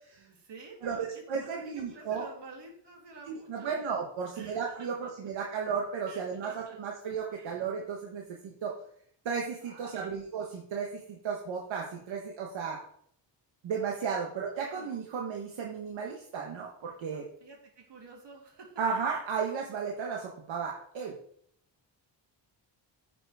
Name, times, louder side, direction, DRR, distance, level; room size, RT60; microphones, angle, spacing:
voice 1, 0.2-1.5 1.7-3.9 4.3-5.1 6.1-6.8 7.3-7.6 9.6-10.2 14.5-14.9 17.1-18.8, right 3 dB, 65° right, 0 dB, 2.9 m, -50 dB
voice 2, 0.8-2.3 3.3-8.7 9.2-12.8 13.6-17.3 18.8-21.1, right 6 dB, 85° right, -1 dB, 1.4 m, -34 dB
9.1 x 6.1 x 4.9 m, 0.66 s
cardioid pair, 105°, 45 cm